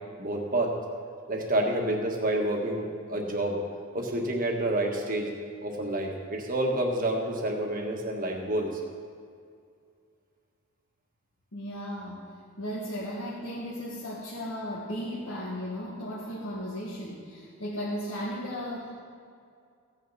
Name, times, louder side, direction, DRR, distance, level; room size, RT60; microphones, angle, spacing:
voice 1, 0.2-0.7 1.3-3.6 3.9-5.3 5.6-8.7, right 1 dB, 40° right, 1 dB, 1.5 m, -28 dB
voice 2, 11.5-12.3 12.6-18.9, equal, 75° left, -7 dB, 1.9 m, -35 dB
16.0 x 9.1 x 4.1 m, 2.3 s
head